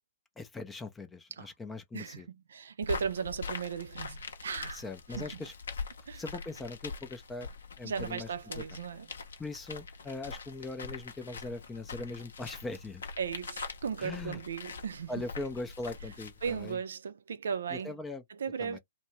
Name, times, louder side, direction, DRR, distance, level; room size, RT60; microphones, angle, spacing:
voice 1, 0.4-2.3 4.7-5.5 6.1-7.5 7.8-8.6 9.4-13.0 14.0-14.4 15.1-16.8 17.7-18.2 18.6-18.8, left 2 dB, 10° left, 0.5 m, -40 dB
voice 2, 1.9-4.8 5.2-5.4 6.1-6.2 7.8-9.1 13.2-15.2 16.4-18.0 18.3-18.8, right 6 dB, 65° right, 0.5 m, -36 dB
sound 1, 2.8-16.7, left 4 dB, 70° left, 0.7 m, -43 dB
2.6 x 2.1 x 3.0 m
figure-of-eight pair, 115°, 0 cm